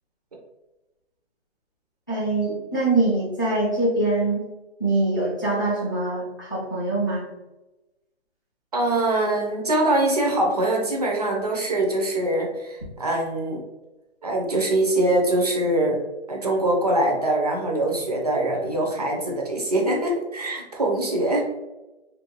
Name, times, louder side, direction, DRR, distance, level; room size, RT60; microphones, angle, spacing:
voice 1, 2.1-4.4 4.8-7.2, right 2 dB, 20° left, -8 dB, 0.4 m, -23 dB
voice 2, 8.7-13.6 14.2-16.0 16.3-21.4, right 1 dB, 35° right, 0 dB, 0.5 m, -23 dB
3.1 x 2.5 x 2.9 m, 1.0 s
hypercardioid pair, 165°, 34 cm